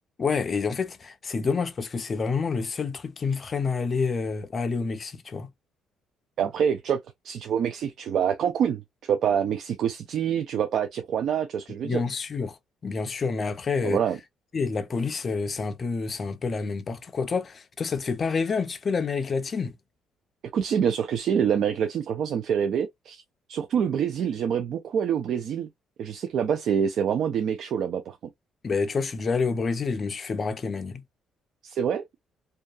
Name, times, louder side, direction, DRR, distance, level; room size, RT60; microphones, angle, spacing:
voice 1, 0.2-5.5 11.8-12.6 12.8-14.0 14.5-19.7 28.6-31.0, left 4 dB, 30° left, 0.4 m, -28 dB
voice 2, 6.4-7.0 7.2-12.0 13.8-14.2 20.5-23.2 23.5-25.7 26.0-28.2 31.6-32.0, right 8 dB, 55° right, 0.4 m, -26 dB
2.7 x 2.2 x 2.2 m
cardioid pair, 155°, 0 cm